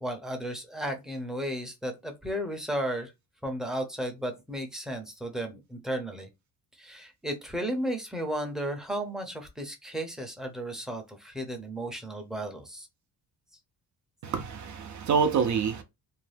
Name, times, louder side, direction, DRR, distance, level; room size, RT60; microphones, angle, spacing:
voice 1, 0.0-3.1 3.4-6.3 6.8-12.9, right 1 dB, ahead, 0.6 m, -34 dB
voice 2, 14.2-15.8, right 6 dB, 55° right, 0.5 m, -26 dB
2.6 x 2.1 x 3.3 m
cardioid pair, 130°, 36 cm